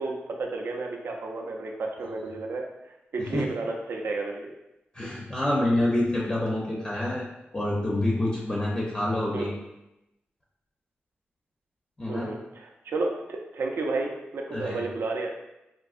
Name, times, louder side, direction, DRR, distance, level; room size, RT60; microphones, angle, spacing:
voice 1, 0.0-2.7 3.1-4.5 9.3-9.5 12.1-15.3, right 3 dB, 70° right, 1 dB, 0.4 m, -32 dB
voice 2, 4.9-7.2 7.5-9.5 12.0-12.3 14.5-14.8, left 1 dB, 20° left, -4 dB, 0.4 m, -27 dB
3.7 x 2.6 x 2.4 m, 0.93 s
wide cardioid pair, 165°, 4 cm